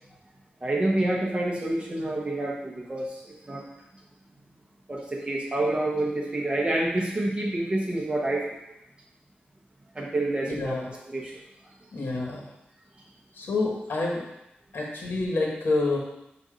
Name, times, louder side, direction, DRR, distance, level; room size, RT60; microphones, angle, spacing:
voice 1, 0.6-3.6 4.9-8.5 9.9-10.8 11.1-11.3, right 1 dB, 30° right, -3 dB, 1.1 m, -28 dB
voice 2, 10.4-10.9 11.9-12.5 13.4-14.2 14.7-16.0, left 3 dB, 80° left, -2 dB, 1.4 m, -28 dB
7.1 x 2.7 x 5.1 m, 0.86 s
wide cardioid pair, 125°, 4 cm